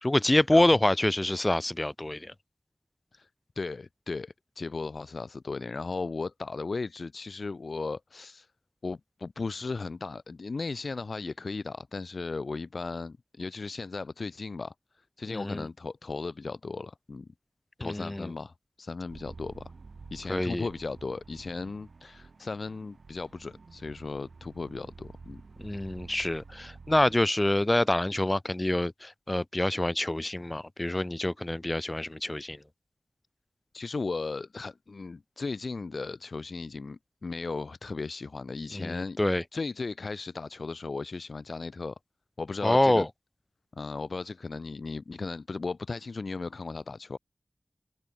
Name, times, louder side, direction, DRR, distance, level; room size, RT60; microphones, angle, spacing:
voice 1, 0.0-2.3 15.3-15.7 17.8-18.3 20.3-20.7 25.6-32.6 38.7-39.4 42.6-43.1, left 1 dB, 25° left, 0.5 m, -26 dB
voice 2, 3.5-8.5 8.8-14.7 15.2-17.3 17.8-19.6 20.1-25.4 33.7-39.2 39.5-41.9 42.4-43.0 43.7-47.2, left 3 dB, 75° left, 1.4 m, -36 dB
sound 1, 19.1-27.2, right 4 dB, 85° right, 1.4 m, -49 dB
wide cardioid pair, 70°, 0 cm